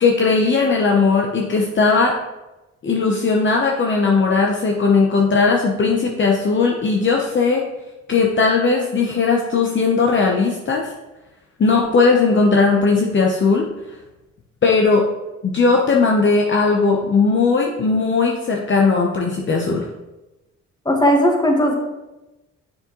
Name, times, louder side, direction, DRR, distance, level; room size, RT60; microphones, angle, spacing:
voice 1, 0.0-2.1 2.8-7.6 8.1-10.9 11.6-13.7 14.6-15.1 15.4-19.9, left 4 dB, 40° left, 0 dB, 0.9 m, -17 dB
voice 2, 20.8-21.8, equal, 15° left, 1 dB, 1.5 m, -16 dB
7.0 x 6.5 x 3.0 m, 1.0 s
cardioid pair, 90°, 30 cm